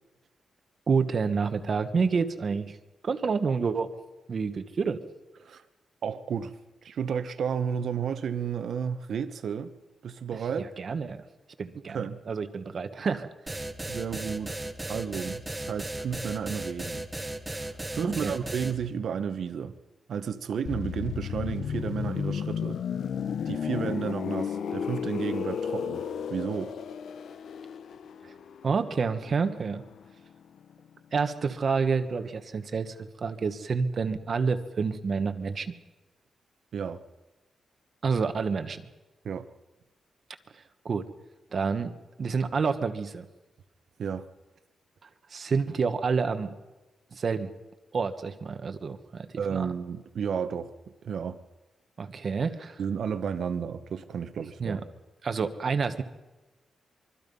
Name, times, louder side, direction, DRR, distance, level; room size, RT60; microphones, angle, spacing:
voice 1, 0.9-2.8 3.0-3.9 4.3-5.0 10.6-11.2 11.6-12.0 12.3-13.3 18.0-18.3 28.2-28.3 28.6-29.8 31.1-35.7 38.0-38.8 40.8-41.0 41.5-41.9 42.2-43.2 45.3-46.5 47.1-47.5 47.9-49.7 52.0-52.8 54.6-54.8 55.2-56.0, right 5 dB, 40° right, 1.3 m, -28 dB
voice 2, 6.0-6.6 6.8-9.7 10.0-10.7 11.9-12.2 13.9-14.6 14.9-17.1 17.5-19.8 20.1-22.8 23.4-26.0 26.3-26.7 36.7-37.0 39.2-39.5 44.0-44.3 49.4-50.7 51.0-51.4 52.8-54.8, right 7 dB, 65° right, 1.3 m, -32 dB
sound 1, 13.5-18.7, right 1 dB, 10° right, 1.5 m, -35 dB
sound 2, 20.7-30.3 30.6-30.8, left 7 dB, 70° left, 0.9 m, -33 dB
25.0 x 24.0 x 5.5 m
wide cardioid pair, 155°, 0 cm